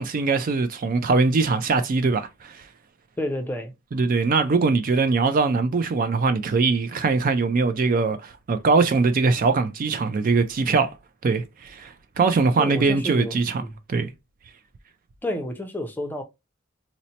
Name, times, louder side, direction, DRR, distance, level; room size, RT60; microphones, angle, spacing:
voice 1, 0.0-2.6 3.9-10.9 11.2-13.6 13.9-14.1, right 4 dB, 40° right, 0.4 m, -22 dB
voice 2, 3.2-3.7 12.6-13.7 15.2-16.2, left 1 dB, 10° left, 0.5 m, -30 dB
4.0 x 2.1 x 2.7 m
head